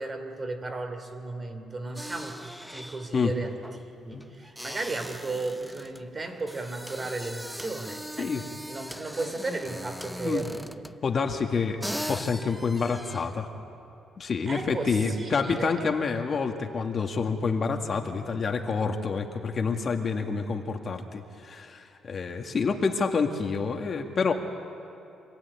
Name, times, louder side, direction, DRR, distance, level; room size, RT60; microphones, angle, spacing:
voice 1, 0.0-8.3 8.7-10.8 14.5-15.8, right 3 dB, 30° right, 6 dB, 3.1 m, -35 dB
sound 1, 2.0-11.1 11.5-11.6 11.8-13.4, equal, ahead, 0.8 m, -40 dB
voice 2, 11.0-13.5 14.2-24.3, left 5 dB, 45° left, 4 dB, 2.0 m, -28 dB
26.5 x 16.0 x 9.8 m, 2.7 s
cardioid pair, 90°, 0 cm